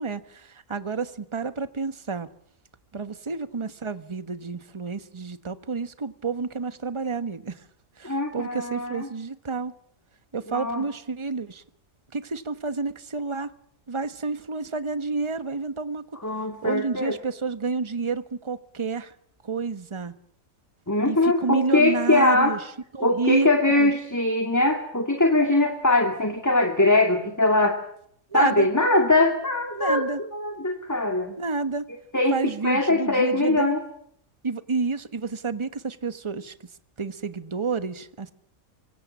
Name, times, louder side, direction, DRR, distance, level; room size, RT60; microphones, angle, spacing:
voice 1, 0.0-2.3 2.9-7.6 8.0-9.7 10.3-11.6 12.1-13.5 13.9-16.2 16.6-19.1 19.4-20.1 21.0-22.6 22.9-23.9 28.3-28.7 29.7-30.2 31.4-31.9 32.3-33.7 34.4-36.5 37.0-38.3, right 4 dB, 20° right, 11 dB, 1.1 m, -29 dB
voice 2, 8.0-9.1 10.5-10.8 16.2-17.2 20.9-22.6 23.0-27.8 28.3-31.4 32.1-32.4 32.6-33.8, left 2 dB, 10° left, 4 dB, 2.3 m, -22 dB
25.0 x 24.5 x 7.4 m, 0.68 s
omnidirectional pair, 1.5 m